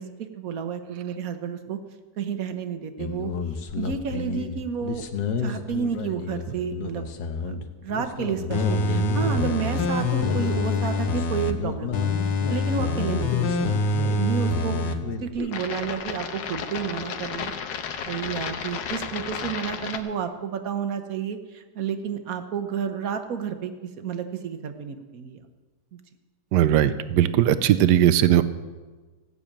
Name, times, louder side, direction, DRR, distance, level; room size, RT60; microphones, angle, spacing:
voice 1, 0.0-1.8 2.2-3.3 3.8-5.0 5.4-7.1 7.4-12.1 12.5-13.7 14.1-17.5 18.0-25.4 25.9-26.0, right 7 dB, 55° right, 8 dB, 1.3 m, -31 dB
sound 1, 3.0-20.0, left 6 dB, 85° left, 1.6 m, -32 dB
sound 2, 8.5-11.5 11.9-14.9 15.3-15.4, left 2 dB, 65° left, 1.6 m, -25 dB
voice 2, 26.5-28.4, right 11 dB, 75° right, 13 dB, 1.2 m, -19 dB
16.0 x 6.8 x 8.7 m, 1.3 s
omnidirectional pair, 1.9 m